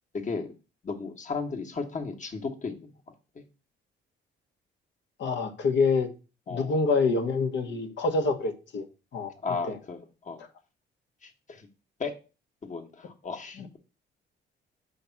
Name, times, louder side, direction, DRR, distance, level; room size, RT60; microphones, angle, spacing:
voice 1, 0.8-2.9 3.3-3.4 6.5-6.7 9.4-10.4 11.2-11.7 12.0-12.1 12.6-13.8, left 4 dB, 40° left, 1.4 m, -35 dB
voice 2, 5.2-6.1 6.5-8.8 9.1-9.3 9.6-9.8 13.6-13.8, left 4 dB, 65° left, 1.2 m, -26 dB
5.4 x 3.5 x 5.8 m
cardioid pair, 90°, 20 cm